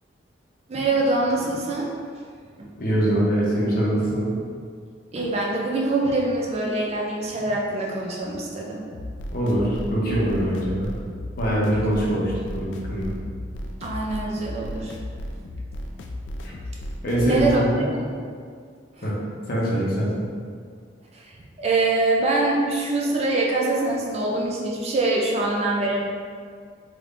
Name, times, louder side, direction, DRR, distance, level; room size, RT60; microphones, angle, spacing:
voice 1, 0.7-1.9 2.6-2.7 5.1-8.9 13.8-14.9 17.2-17.6 18.0-18.1 21.1-21.2 21.6-26.0, right 2 dB, 35° right, -2 dB, 0.4 m, -24 dB
voice 2, 2.8-4.3 9.3-10.9 11.4-13.1 17.0-17.9 19.0-19.1 19.5-20.1, right 1 dB, 50° left, -5 dB, 0.7 m, -23 dB
sound 1, 8.9-17.6, left 1 dB, 75° left, 0.3 m, -34 dB
3.5 x 2.9 x 2.5 m, 2.1 s
head